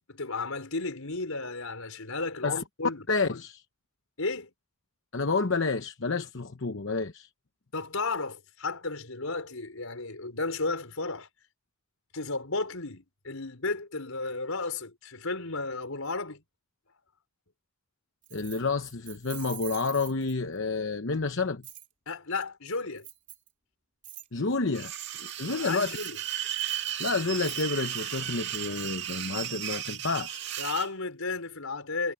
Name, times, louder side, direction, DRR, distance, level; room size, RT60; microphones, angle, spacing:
voice 1, 0.1-3.1 4.2-4.5 7.7-11.3 12.1-16.4 22.1-23.1 25.5-26.2 30.6-32.1, left 3 dB, 85° left, 4.8 m, -33 dB
voice 2, 3.1-3.6 5.1-7.3 18.3-21.6 24.3-26.0 27.0-30.4, left 4 dB, 60° left, 0.9 m, -29 dB
Keys jangling, 18.2-20.6 21.6-21.9 23.0-23.5 24.0-24.3 25.8-29.2, right 12 dB, 35° right, 3.1 m, -46 dB
sound 1, 24.7-30.9, right 11 dB, 55° right, 2.4 m, -35 dB
head